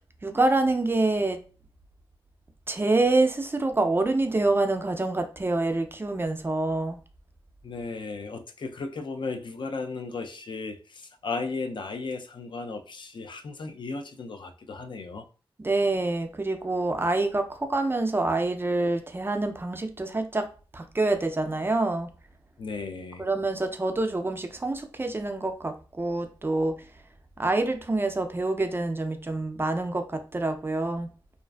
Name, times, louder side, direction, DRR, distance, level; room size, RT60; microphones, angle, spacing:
voice 1, 0.2-1.4 2.7-7.0 15.6-20.5 20.7-22.1 23.2-26.7 27.4-31.1, right 2 dB, 25° right, 0.3 m, -26 dB
voice 2, 7.6-15.3 22.6-23.2, left 4 dB, 55° left, 0.3 m, -35 dB
2.4 x 2.3 x 2.2 m
wide cardioid pair, 115°, 9 cm